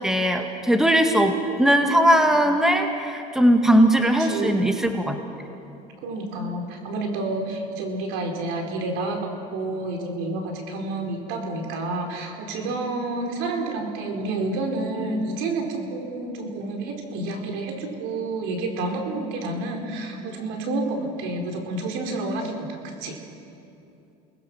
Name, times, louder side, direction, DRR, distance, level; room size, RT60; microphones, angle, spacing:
voice 1, 0.0-5.2, right 1 dB, ahead, 4 dB, 1.9 m, -19 dB
voice 2, 4.2-4.7 6.0-22.6 22.8-23.2, right 2 dB, 70° right, 2 dB, 4.5 m, -29 dB
29.0 x 20.5 x 6.2 m, 2.7 s
supercardioid pair, 100°, 20 cm